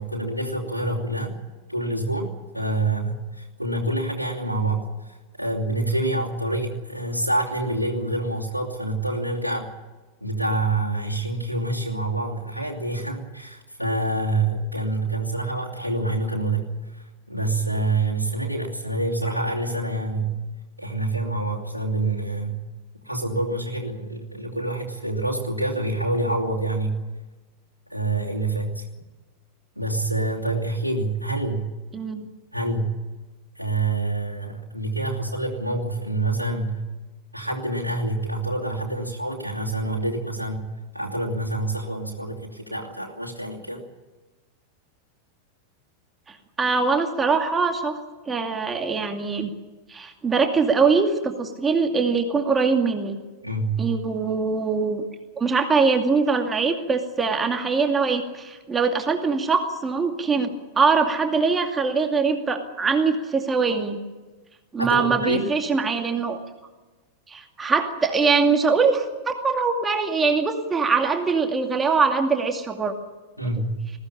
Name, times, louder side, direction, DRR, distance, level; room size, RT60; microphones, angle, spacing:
voice 1, 0.0-1.3 1.7-4.9 5.4-9.7 10.2-20.3 20.8-22.6 23.0-27.0 27.9-28.8 29.8-31.6 32.5-33.0 33.6-36.8 37.3-40.6 40.9-43.8 53.4-53.8 64.8-65.5 73.4-73.9, right 2 dB, 90° right, -4 dB, 2.8 m, -27 dB
voice 2, 31.9-32.3 46.3-48.0 48.3-49.5 49.9-53.2 53.8-55.1 55.4-64.0 64.7-66.4 67.3-72.9 73.6-73.7, right 4 dB, 15° right, 4 dB, 2.4 m, -22 dB
21.0 x 16.5 x 10.0 m, 1.2 s
figure-of-eight pair, 90°, 0 cm